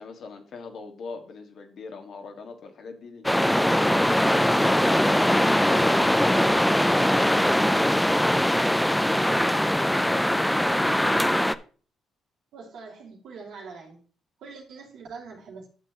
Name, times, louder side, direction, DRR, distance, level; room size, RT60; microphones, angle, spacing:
voice 1, 0.0-3.2 3.8-6.6, left 4 dB, 65° left, 1.7 m, -42 dB
sound 1, 3.2-11.5, equal, 5° left, 0.5 m, -21 dB
voice 2, 12.5-14.0 14.4-15.7, right 4 dB, 75° right, 2.7 m, -43 dB
11.5 x 7.0 x 3.0 m
supercardioid pair, 65°, 0 cm